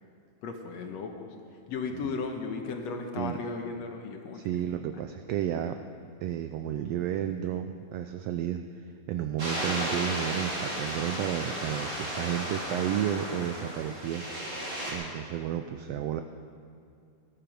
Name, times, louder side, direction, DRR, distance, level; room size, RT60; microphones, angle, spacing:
voice 1, 0.4-1.3 1.7-4.4, left 4 dB, 70° left, 4 dB, 2.2 m, -35 dB
voice 2, 4.3-5.8 6.2-14.2 14.9-16.2, right 10 dB, 85° right, 7 dB, 1.4 m, -32 dB
sound 1, 9.4-14.9, equal, 35° right, 3.8 m, -34 dB
19.0 x 12.5 x 5.0 m, 2.4 s
omnidirectional pair, 3.4 m